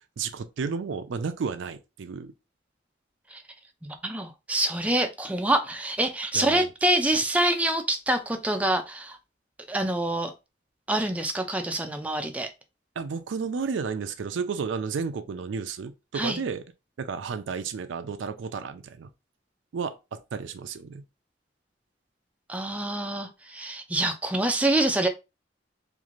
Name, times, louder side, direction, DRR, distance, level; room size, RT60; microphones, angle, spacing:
voice 1, 0.2-2.3 6.3-6.7 13.0-16.6 17.0-19.1 19.7-21.0, right 5 dB, 80° right, 0.4 m, -32 dB
voice 2, 3.8-9.2 9.7-10.3 10.9-12.5 16.1-16.4 22.5-25.1, right 1 dB, 10° right, 0.3 m, -26 dB
3.1 x 2.5 x 2.4 m
head